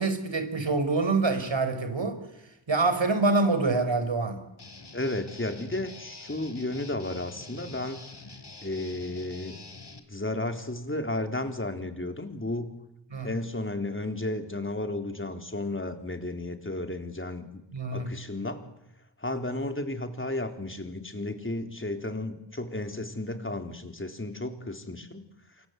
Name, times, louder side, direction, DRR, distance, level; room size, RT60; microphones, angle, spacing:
voice 1, 0.0-2.2 2.7-4.4 13.1-13.3 17.7-18.1, right 3 dB, 70° right, 9 dB, 4.8 m, -26 dB
Guitar, 4.6-10.0, left 3 dB, 60° left, 3.9 m, -46 dB
voice 2, 4.9-8.0 8.6-9.7 10.1-12.7 13.2-17.6 17.9-18.6 19.2-25.2, left 2 dB, 25° left, 6 dB, 3.8 m, -33 dB
28.5 x 24.0 x 8.3 m, 0.88 s
wide cardioid pair, 55°, 47 cm